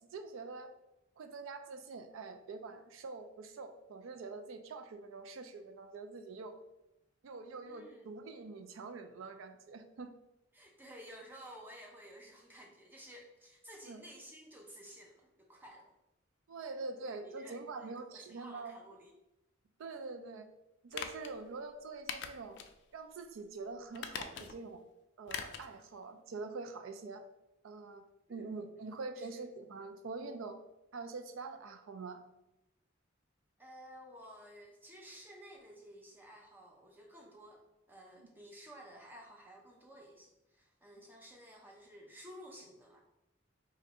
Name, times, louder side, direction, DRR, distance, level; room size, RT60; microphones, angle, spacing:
voice 1, 0.1-0.7 1.2-6.6 7.2-10.1 13.8-14.0 16.5-18.8 19.8-20.5 20.8-22.6 22.9-24.8 25.2-27.2 27.6-28.0 28.3-30.6 30.9-32.2 38.2-38.3, right 3 dB, 80° right, 7 dB, 0.4 m, -45 dB
voice 2, 7.7-8.1 10.5-15.9 17.2-19.1 28.3-28.5 29.2-29.3 33.6-43.0, equal, 10° right, 0 dB, 0.5 m, -54 dB
sound 1, 20.9-21.3 22.1-22.7 23.1-23.2 23.9-24.7 25.3-25.7 26.0-26.1, left 7 dB, 55° left, 0.3 m, -42 dB
2.6 x 2.6 x 4.1 m, 0.92 s
head